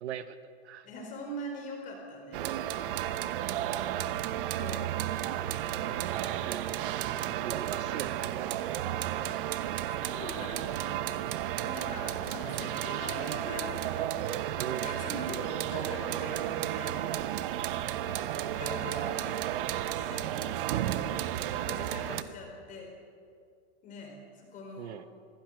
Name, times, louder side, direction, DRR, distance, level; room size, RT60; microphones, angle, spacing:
voice 1, 0.0-0.9 2.3-2.7 6.0-6.8 7.4-8.9 14.6-15.0 24.8-25.0, right 9 dB, 75° right, 12 dB, 1.2 m, -40 dB
voice 2, 0.8-2.5 4.5-4.9 9.9-11.1 11.6-17.4 18.0-19.4 19.8-21.1 21.5-22.9 23.8-25.0, left 1 dB, 25° left, 1 dB, 4.5 m, -43 dB
sound 1, 2.3-22.2, right 12 dB, 50° right, 1.0 m, -33 dB
25.0 x 17.0 x 6.5 m, 2.3 s
supercardioid pair, 160°, 34 cm